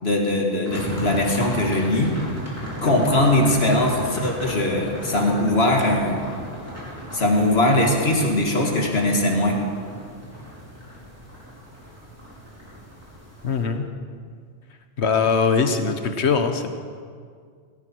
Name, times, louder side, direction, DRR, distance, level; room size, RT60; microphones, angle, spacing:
voice 1, 0.0-2.2 2.8-6.2 7.1-9.6, left 1 dB, 70° left, 1 dB, 2.4 m, -20 dB
sound 1, 0.7-13.6, equal, 15° right, 4.7 m, -36 dB
voice 2, 13.4-13.8 15.0-16.7, left 5 dB, 85° left, 7 dB, 1.4 m, -21 dB
18.5 x 16.5 x 4.6 m, 2.1 s
omnidirectional pair, 1.1 m